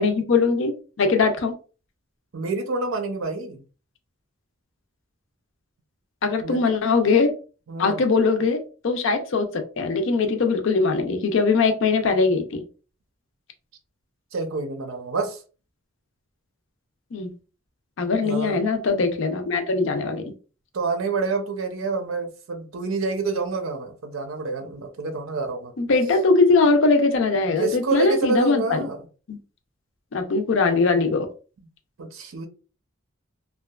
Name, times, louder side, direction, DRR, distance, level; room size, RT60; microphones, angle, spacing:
voice 1, 0.0-1.5 6.2-7.3 7.8-9.5 9.8-12.6 17.1-17.3 18.0-20.3 25.8-28.8 29.3-29.4 30.1-31.3, left 4 dB, 65° left, 0.5 m, -21 dB
voice 2, 2.3-3.6 6.4-6.6 7.7-8.0 14.3-15.4 18.2-18.6 20.7-25.7 27.6-29.0 32.0-32.5, right 3 dB, 85° right, 0.5 m, -28 dB
2.7 x 2.3 x 2.2 m
head